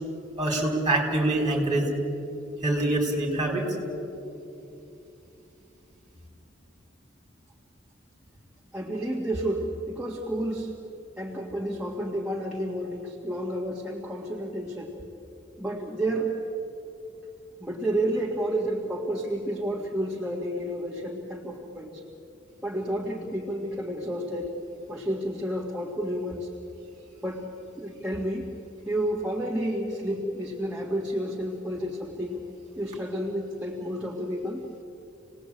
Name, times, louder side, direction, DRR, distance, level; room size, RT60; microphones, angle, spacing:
voice 1, 0.4-1.9 2.6-3.7, right 2 dB, 20° right, 0 dB, 4.6 m, -25 dB
voice 2, 8.7-10.8 11.2-14.9 15.6-16.4 17.6-22.0 22.6-24.6 24.9-26.5 27.2-27.5 27.8-28.5 28.8-32.4 32.8-34.7, right 1 dB, 5° right, -3 dB, 1.8 m, -30 dB
28.0 x 19.0 x 8.7 m, 2.9 s
head